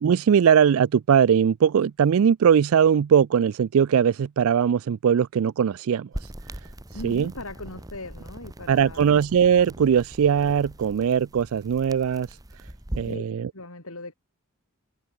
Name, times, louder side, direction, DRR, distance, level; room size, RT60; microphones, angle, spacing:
voice 1, 0.0-6.1 7.0-7.3 8.7-12.3 13.0-13.5, right 8 dB, 70° right, 0.3 m, -20 dB
sound 1, 6.1-13.2, right 1 dB, 15° right, 1.3 m, -40 dB
voice 2, 6.9-9.3 13.0-13.2 13.5-14.1, left 2 dB, 75° left, 5.8 m, -39 dB
head